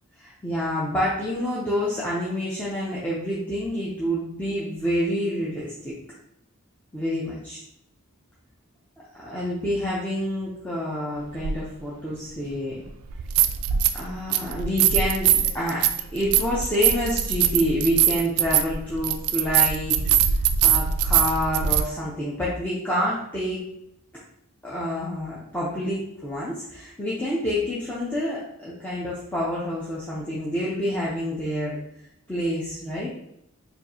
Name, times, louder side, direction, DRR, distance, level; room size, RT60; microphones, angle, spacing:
voice 1, 0.2-5.9 6.9-7.6 9.2-12.8 13.9-15.8 16.1-20.0 20.6-23.6 24.6-31.8 32.3-33.1, equal, 10° left, -8 dB, 0.6 m, -28 dB
sound 1, 11.4-11.5 13.1-14.0 14.3-21.8, right 9 dB, 80° right, 0.3 m, -22 dB
4.4 x 2.6 x 2.7 m, 0.78 s
head